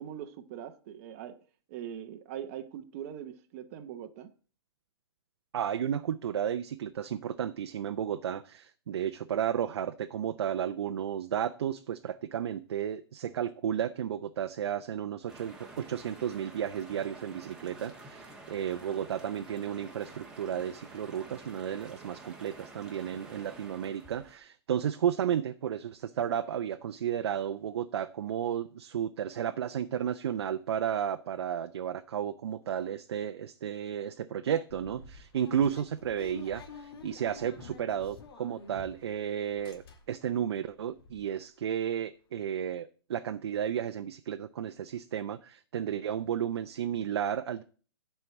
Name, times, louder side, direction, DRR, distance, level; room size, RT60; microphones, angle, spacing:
voice 1, 0.0-1.4 1.7-4.3, right 9 dB, 35° right, 0.8 m, -42 dB
voice 2, 5.5-47.6, right 9 dB, 70° right, 0.6 m, -33 dB
sound 1, 15.3-24.4, right 2 dB, 5° right, 1.3 m, -49 dB
sound 2, 34.7-39.2 39.5-40.3 40.7-40.8 41.0-41.2, left 4 dB, 60° left, 1.8 m, -49 dB
7.8 x 4.5 x 7.1 m
hypercardioid pair, 155°, 14 cm